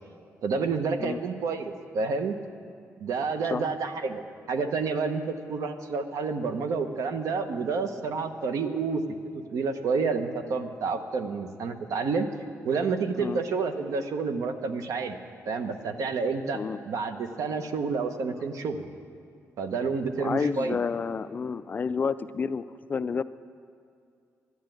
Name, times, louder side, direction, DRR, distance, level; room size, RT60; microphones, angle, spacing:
voice 1, 0.4-2.4 3.0-9.0 9.5-12.3 12.6-15.2 15.5-18.9 19.6-20.8, right 4 dB, 70° right, 7 dB, 1.0 m, -29 dB
voice 2, 20.2-23.2, left 5 dB, 30° left, 14 dB, 0.3 m, -30 dB
12.0 x 11.0 x 9.1 m, 2.3 s
wide cardioid pair, 155°, 6 cm